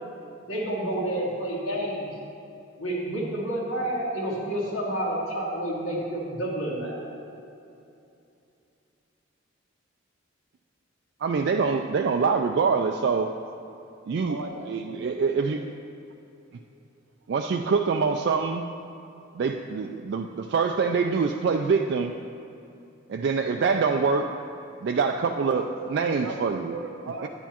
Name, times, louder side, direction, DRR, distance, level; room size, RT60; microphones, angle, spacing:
voice 1, 0.5-2.1 2.8-7.0, right 1 dB, 90° left, -6 dB, 1.9 m, -29 dB
voice 2, 11.2-13.3 14.1-14.4 14.7-15.6 17.3-18.7 19.3-22.1 23.1-24.3 24.8-26.7 27.2-27.3, right 5 dB, 55° right, 4 dB, 0.3 m, -25 dB
voice 3, 14.3-15.7 25.7-27.3, right 3 dB, 85° right, 4 dB, 0.7 m, -38 dB
9.6 x 9.2 x 2.9 m, 2.7 s
head